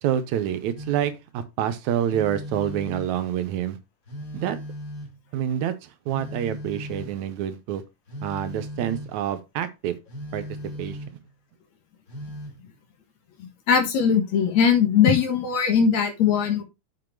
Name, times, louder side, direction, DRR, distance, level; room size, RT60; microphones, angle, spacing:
voice 1, 0.0-3.8 4.3-4.6 5.3-7.8 8.2-10.0 10.3-10.5 10.8-11.0, right 10 dB, 75° right, 2.2 m, -27 dB
Telephone, 0.7-1.3 2.0-3.3 4.0-5.3 6.1-7.3 8.1-9.2 10.1-11.3 12.1-12.6, equal, 30° left, 1.7 m, -37 dB
voice 2, 13.4-16.6, left 7 dB, 65° left, 2.8 m, -20 dB
7.7 x 5.2 x 4.6 m
omnidirectional pair, 3.5 m